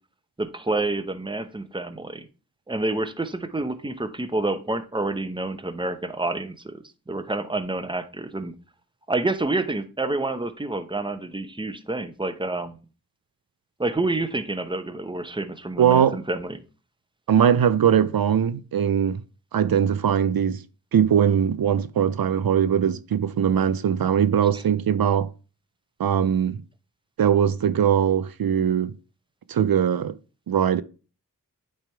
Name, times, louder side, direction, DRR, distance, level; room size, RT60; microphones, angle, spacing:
voice 1, 0.4-2.3 2.7-8.5 9.1-12.8 13.8-16.6, right 2 dB, 15° right, 0.8 m, -28 dB
voice 2, 15.8-16.2 17.3-19.2 19.5-20.6 20.9-25.3 26.0-26.6 27.2-28.9 29.5-30.1 30.5-30.8, right 8 dB, 85° right, 0.5 m, -21 dB
9.0 x 3.5 x 4.5 m
wide cardioid pair, 55°, 35 cm